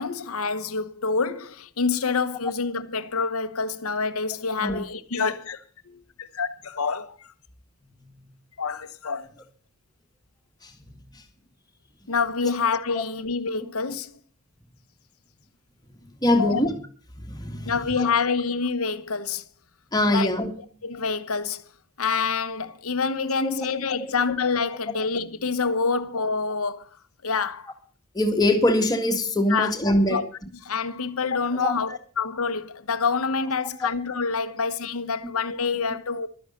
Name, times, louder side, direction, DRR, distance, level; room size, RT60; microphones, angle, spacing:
voice 1, 0.0-7.3 8.6-9.3 12.1-14.2 16.4-16.6 17.6-19.4 20.1-20.3 20.8-21.6 22.0-26.9 27.2-27.7 29.5-29.7 30.1-30.2 30.6-36.3, left 5 dB, 75° left, 1.0 m, -27 dB
voice 2, 16.2-16.7 17.3-18.1 19.9-20.5 23.4-23.7 24.9-25.0 28.1-30.2 31.5-31.7, left 1 dB, 20° left, 1.9 m, -23 dB
12.0 x 10.0 x 6.4 m
head